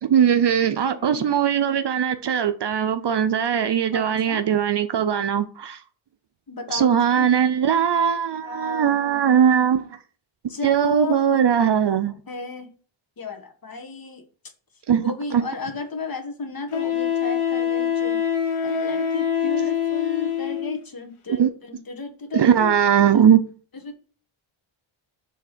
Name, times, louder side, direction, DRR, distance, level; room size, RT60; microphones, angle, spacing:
voice 1, 0.0-5.8 6.7-9.8 10.6-12.1 14.9-15.4 21.3-21.5 22.3-23.4, right 8 dB, 55° right, 0.6 m, -20 dB
voice 2, 0.9-1.4 3.9-4.4 6.5-7.3 8.4-9.9 10.5-11.7 12.1-12.7 13.2-14.2 15.0-18.3 18.6-22.9 23.1-23.2 23.7-24.0, left 4 dB, 45° left, 1.6 m, -34 dB
Wind instrument woodwind instrument, 15.4-15.5 16.7-20.8, left 8 dB, 75° left, 1.3 m, -24 dB
7.1 x 3.5 x 6.0 m
wide cardioid pair, 95°, 50 cm